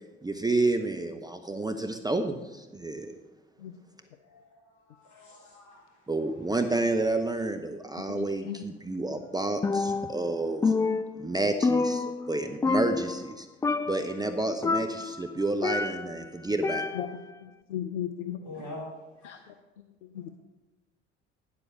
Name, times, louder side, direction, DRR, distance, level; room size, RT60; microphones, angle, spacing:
voice 1, 0.2-3.1 6.1-10.7 11.2-13.5 13.9-16.9, right 2 dB, 10° right, 6 dB, 0.7 m, -30 dB
voice 2, 4.3-4.6 4.9-5.8 6.1-6.2 12.2-12.3 18.4-18.9 19.2-19.5, left 2 dB, 50° left, -2 dB, 4.2 m, -44 dB
voice 3, 8.1-8.6 16.9-17.1 17.4-18.5 19.2-19.4 20.1-20.3, left 10 dB, 80° left, 8 dB, 0.6 m, -36 dB
Percussion, 9.6-10.3 10.6-12.4 12.6-13.3 13.6-14.1 14.6-16.2 16.6-17.3, left 4 dB, 10° left, 0.3 m, -28 dB
9.7 x 7.4 x 5.8 m, 1.1 s
figure-of-eight pair, 55°, 35 cm